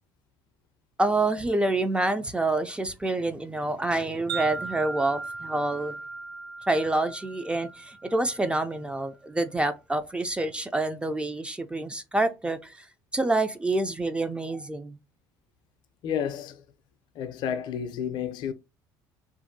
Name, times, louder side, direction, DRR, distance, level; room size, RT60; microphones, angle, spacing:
voice 1, 1.0-5.9 6.7-12.9 13.1-15.0, right 2 dB, 10° right, 0.3 m, -27 dB
Wind chime, 4.3-8.6, right 3 dB, 65° right, 0.8 m, -37 dB
voice 2, 16.0-16.6 17.2-18.5, left 8 dB, 65° left, 0.4 m, -31 dB
2.7 x 2.5 x 2.6 m
supercardioid pair, 95°, 8 cm